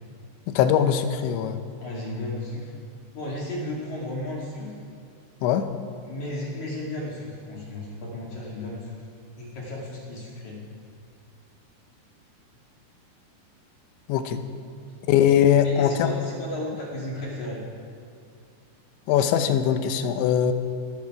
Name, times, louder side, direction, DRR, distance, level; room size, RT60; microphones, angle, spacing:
voice 1, 0.5-1.6 5.4-5.7 14.1-14.4 15.1-16.1 19.1-20.5, left 9 dB, 80° left, 8 dB, 3.1 m, -21 dB
voice 2, 1.8-2.7 3.1-4.7 6.0-9.1 9.4-10.6 15.4-17.6, left 1 dB, 50° left, -3 dB, 3.0 m, -34 dB
20.5 x 14.5 x 4.8 m, 2.3 s
omnidirectional pair, 5.3 m